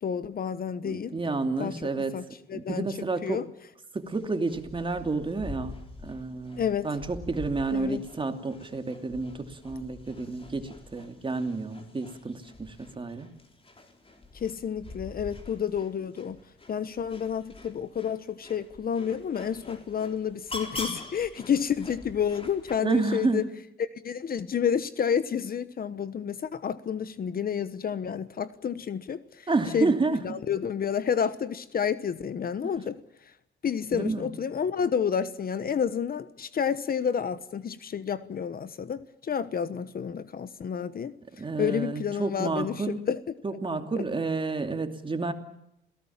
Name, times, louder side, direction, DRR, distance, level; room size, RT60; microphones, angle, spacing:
voice 1, 0.0-1.2 1.6-1.7 2.1-2.9 3.2-3.5 6.6-6.9 7.7-8.0 14.3-16.4 16.7-23.4 23.9-29.5 29.7-29.9 30.2-33.0 33.6-41.1 41.6-43.2 44.0-44.1, left 7 dB, 50° left, 1.2 m, -30 dB
voice 2, 0.8-2.2 2.5-3.4 3.9-5.8 6.0-13.3 22.8-23.4 29.5-30.4 33.9-34.3 41.4-43.0 43.4-45.3, right 3 dB, 25° right, 2.7 m, -30 dB
sound 1, 4.1-22.8, left 2 dB, 30° left, 4.0 m, -45 dB
28.0 x 18.0 x 7.4 m
cardioid pair, 90°, 20 cm